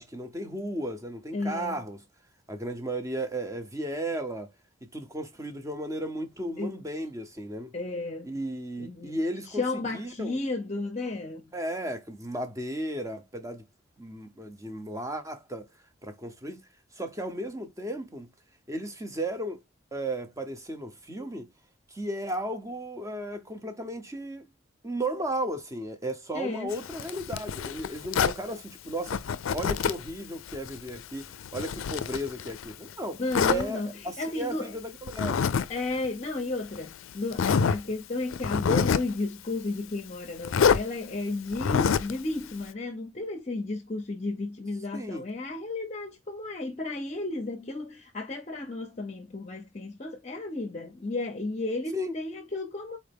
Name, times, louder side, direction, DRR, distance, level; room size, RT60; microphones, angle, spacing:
voice 1, 0.0-2.0 2.5-4.5 4.8-7.7 8.2-10.4 11.5-13.6 14.0-15.7 16.0-16.7 16.9-18.3 18.7-19.6 19.9-21.5 21.9-24.5 24.8-35.4 44.9-45.3 51.9-52.2, right 1 dB, 15° right, 0.8 m, -35 dB
voice 2, 1.3-1.8 6.6-6.8 7.7-8.4 8.8-9.2 9.5-11.5 26.3-26.8 33.2-33.9 34.2-34.8 35.7-53.0, left 2 dB, 35° left, 0.6 m, -33 dB
Zipper (clothing), 26.7-28.4 29.1-30.1 30.5-32.7 33.3-33.6 35.1-35.7 35.9-36.1 36.8-36.9 37.3-37.8 38.3-39.1 40.4-40.8 41.5-42.2, left 6 dB, 85° left, 0.4 m, -26 dB
4.2 x 3.3 x 3.5 m
head